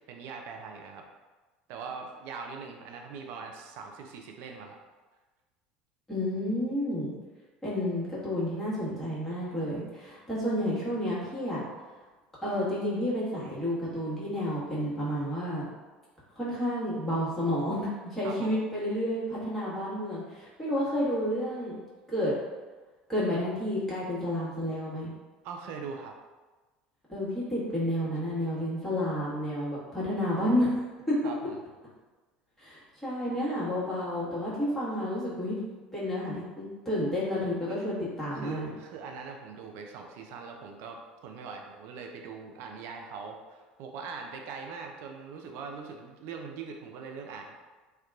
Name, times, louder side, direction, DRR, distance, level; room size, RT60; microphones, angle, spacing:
voice 1, 0.1-1.0 1.7-4.8 18.2-18.6 25.4-26.2 31.2-31.6 37.7-37.8 38.3-47.5, right 5 dB, 55° right, 2 dB, 0.4 m, -41 dB
voice 2, 6.1-7.1 7.6-11.6 12.4-15.7 16.3-21.8 22.1-22.3 23.1-25.1 27.1-30.7 31.1-31.2 32.6-35.6 35.9-38.7, left 1 dB, 5° left, -10 dB, 1.4 m, -30 dB
2.7 x 2.3 x 2.3 m, 1.3 s
hypercardioid pair, 70°, 5 cm